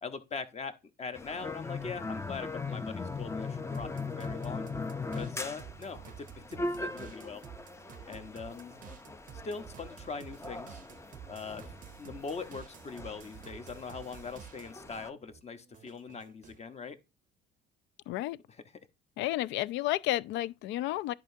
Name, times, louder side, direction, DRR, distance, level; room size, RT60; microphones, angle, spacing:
voice 1, 0.0-4.7 5.1-7.4 8.1-8.7 9.4-10.8 11.3-11.7 12.0-17.0, left 5 dB, 30° left, 1.0 m, -41 dB
sound 1, 1.1-15.1, left 3 dB, 15° left, 0.5 m, -40 dB
sound 2, 3.7-14.9 15.3-16.7, right 9 dB, 40° right, 0.6 m, -51 dB
voice 2, 18.1-18.4 19.2-21.1, left 16 dB, 65° left, 0.4 m, -31 dB
10.5 x 4.7 x 2.7 m
supercardioid pair, 75°, 20 cm